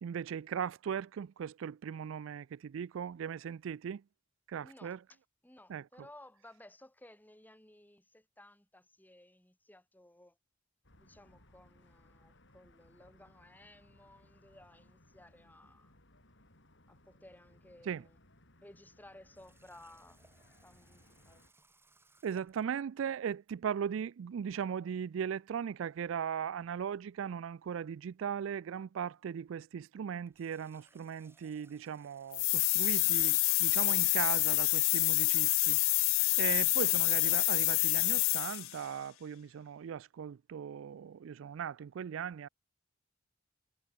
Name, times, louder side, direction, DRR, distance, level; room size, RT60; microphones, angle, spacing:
voice 1, 0.0-4.0 4.5-5.0 5.7-5.9 17.9-18.0 22.2-42.5, right 8 dB, 70° right, 0.3 m, -38 dB
voice 2, 4.6-5.2 5.4-10.4 11.0-15.9 16.9-18.2 18.6-20.2 20.6-21.5, left 1 dB, 10° left, 2.6 m, -58 dB
sound 1, 10.8-21.5, left 1 dB, 65° left, 7.0 m, -64 dB
Water tap faucet, 19.3-22.7 30.1-34.0, right 3 dB, 10° right, 7.9 m, -67 dB
sound 2, 32.3-38.8, left 24 dB, 85° left, 0.4 m, -28 dB
head